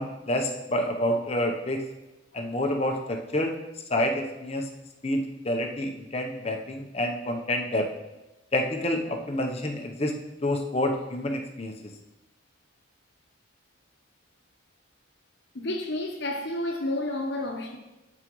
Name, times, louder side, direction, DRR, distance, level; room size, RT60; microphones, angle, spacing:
voice 1, 0.0-1.8 2.3-3.5 3.9-4.7 5.0-7.9 8.5-10.1 10.4-11.7, left 1 dB, 30° left, 0.8 m, -28 dB
voice 2, 15.5-17.8, left 1 dB, 60° left, 0.9 m, -30 dB
12.0 x 4.8 x 3.1 m
head